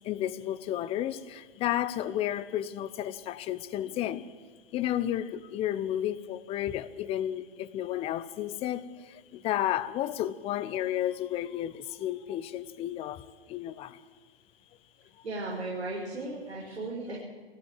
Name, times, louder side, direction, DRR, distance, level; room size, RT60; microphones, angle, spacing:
voice 1, 0.0-4.3 4.7-13.2 13.5-14.0, left 12 dB, 20° left, 0.7 m, -32 dB
voice 2, 15.2-17.2, right 2 dB, 80° right, 6.3 m, -36 dB
23.0 x 16.0 x 7.7 m
hypercardioid pair, 130°, 33 cm